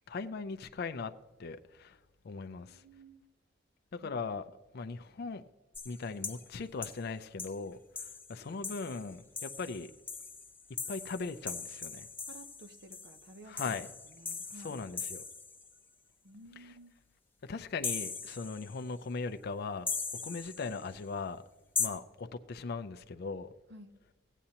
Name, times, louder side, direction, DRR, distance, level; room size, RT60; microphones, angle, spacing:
voice 1, 0.1-1.1 1.4-2.0 2.2-2.8 3.9-4.4 4.7-5.4 5.9-9.9 10.9-12.1 13.5-13.9 14.6-15.2 17.4-19.9 20.2-21.4 21.8-23.5, left 4 dB, 55° left, 0.4 m, -39 dB
voice 2, 2.6-3.2 4.0-4.1 12.3-13.8 14.0-14.8 16.2-17.0 23.7-24.0, right 1 dB, 60° right, 0.8 m, -53 dB
sound 1, 5.7-6.5 6.8-7.0 7.4-7.6 8.0-15.7 17.8-18.9 19.9-20.9 21.8-21.9, left 5 dB, 10° left, 0.7 m, -40 dB
15.5 x 9.0 x 2.9 m
head